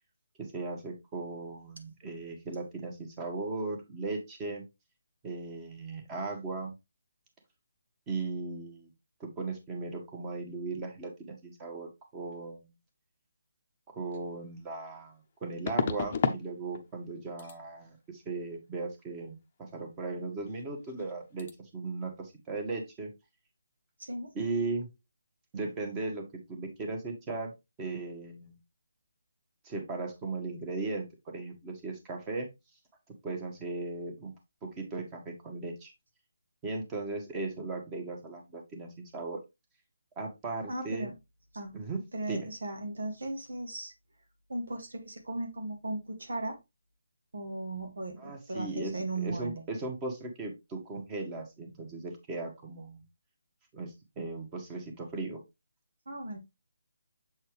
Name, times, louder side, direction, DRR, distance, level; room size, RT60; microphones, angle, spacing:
voice 1, 0.4-4.6 5.2-6.7 8.1-8.9 9.2-12.6 13.9-19.4 19.7-21.5 21.7-23.1 24.3-24.9 25.5-26.2 26.5-27.5 27.8-28.5 29.6-31.0 31.3-32.5 33.2-34.3 34.6-35.9 36.6-39.4 40.2-41.1 41.7-42.0 42.3-42.5 48.2-48.9 49.2-53.0 53.7-55.4, right 3 dB, 20° right, 1.7 m, -37 dB
sound 1, 14.1-14.2 15.7-16.4 16.7-17.1 17.4-17.6 20.5-20.6 20.9-21.1 21.4-21.5, left 6 dB, 35° left, 0.8 m, -31 dB
voice 2, 24.0-24.3 40.7-41.1 41.5-41.7 42.1-43.9 44.5-46.6 47.3-49.6 56.1-56.4, right 2 dB, 75° right, 1.9 m, -37 dB
7.3 x 4.3 x 3.2 m
hypercardioid pair, 160°, 0 cm